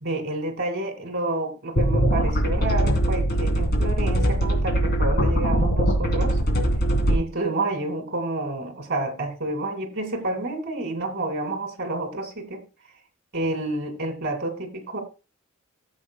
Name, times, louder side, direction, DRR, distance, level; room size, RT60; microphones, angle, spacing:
voice 1, 0.0-6.4 7.1-12.6 13.3-15.0, right 2 dB, 55° right, 2.4 m, -29 dB
sound 1, 1.8-7.2, right 1 dB, 50° left, 3.0 m, -21 dB
17.0 x 7.7 x 2.2 m
head